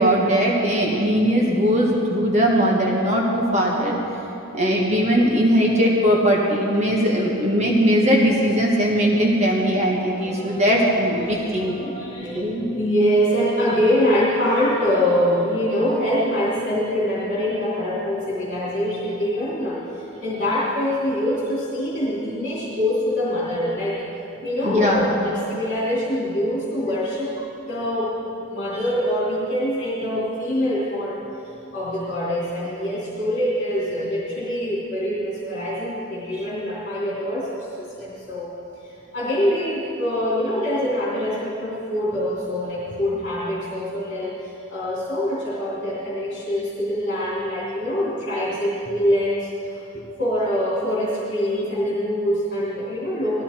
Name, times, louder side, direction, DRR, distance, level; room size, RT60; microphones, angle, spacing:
voice 1, 0.0-4.0 4.5-11.9 12.3-12.7 24.6-25.1, equal, 35° right, -3 dB, 1.5 m, -19 dB
voice 2, 10.2-24.0 24.4-27.3 27.7-37.7 38.0-38.5 38.8-49.8 50.2-53.4, equal, 45° left, -7 dB, 3.1 m, -24 dB
18.5 x 14.0 x 4.5 m, 3.0 s
head